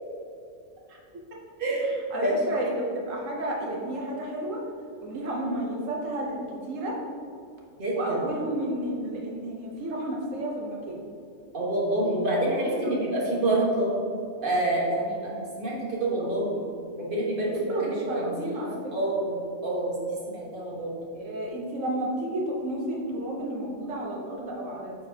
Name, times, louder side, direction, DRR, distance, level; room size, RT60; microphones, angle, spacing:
voice 1, 1.6-1.9 2.2-2.4 7.8-8.2 11.5-13.9 14.4-16.6 17.0-17.7 18.1-18.5 18.9-19.3 19.6-19.9 20.3-20.9, right 1 dB, 45° right, -4 dB, 1.4 m, -27 dB
voice 2, 2.1-4.6 5.0-6.4 6.7-7.0 7.9-11.0 16.2-16.3 17.6-18.9 21.1-24.9, right 1 dB, 80° right, -2 dB, 1.2 m, -31 dB
9.1 x 4.0 x 2.8 m, 2.5 s
omnidirectional pair, 1.3 m